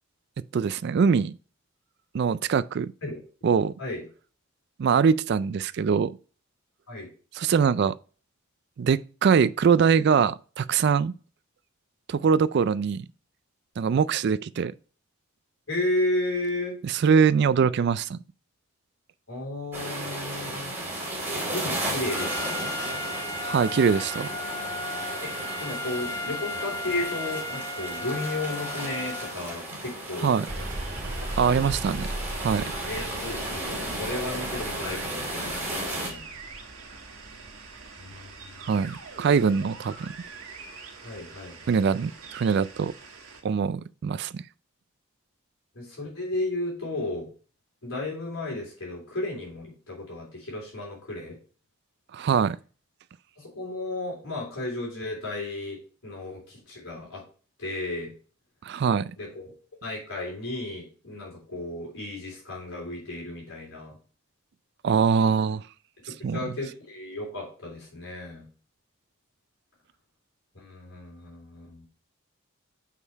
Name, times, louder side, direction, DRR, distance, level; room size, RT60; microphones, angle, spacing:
voice 1, 0.5-1.4 2.1-2.9 3.4-3.7 4.8-6.1 7.3-7.9 8.8-11.1 12.1-13.1 13.8-14.7 16.8-18.2 23.4-24.3 30.2-30.5 31.4-32.1 32.4-32.6 38.6-40.1 41.7-42.9 43.4-44.4 52.1-52.6 58.6-59.1 64.8-65.6 66.2-66.5, right 6 dB, 50° right, 0.3 m, -23 dB
voice 2, 15.7-16.7 19.3-20.7 21.5-22.7 25.2-25.3 25.6-30.3 31.2-31.7 32.9-36.2 38.0-38.5 41.0-41.8 45.7-47.3 47.8-51.4 53.4-57.2 57.6-58.1 59.2-59.5 59.8-63.9 66.3-68.5 70.5-71.8, left 2 dB, 75° left, 3.5 m, -33 dB
sound 1, 19.7-36.1, right 1 dB, 10° right, 2.5 m, -34 dB
Trumpet, 22.1-29.4, left 1 dB, 15° left, 0.6 m, -35 dB
sound 2, 30.5-43.4, right 2 dB, 75° right, 1.7 m, -39 dB
6.4 x 5.6 x 4.6 m
head